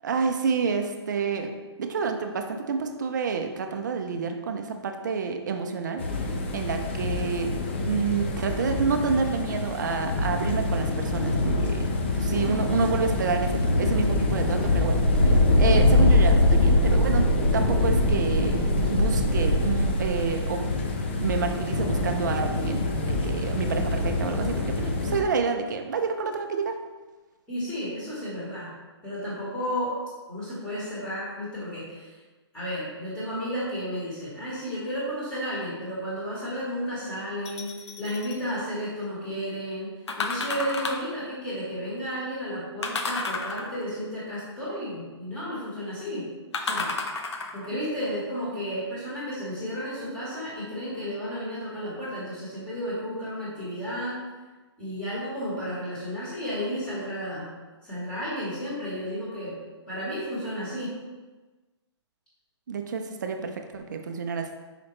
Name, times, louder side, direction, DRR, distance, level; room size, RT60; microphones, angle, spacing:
voice 1, 0.0-1.5 1.8-6.1 6.5-20.8 21.2-26.8 62.7-64.5, right 5 dB, 40° right, 5 dB, 0.6 m, -29 dB
sound 1, 6.0-25.2, left 2 dB, 25° left, 0.4 m, -24 dB
voice 2, 27.5-28.7 29.0-30.0 30.3-32.2 32.5-46.3 46.6-46.9 47.5-54.2 54.8-57.5 57.8-59.6 59.9-60.9, equal, 5° left, -9 dB, 1.6 m, -33 dB
sound 2, 37.4-38.4 40.1-41.2 42.8-44.0 46.5-47.7 48.3-48.4, left 3 dB, 70° left, 0.9 m, -31 dB
6.0 x 4.9 x 3.2 m, 1.2 s
hypercardioid pair, 175°, 15 cm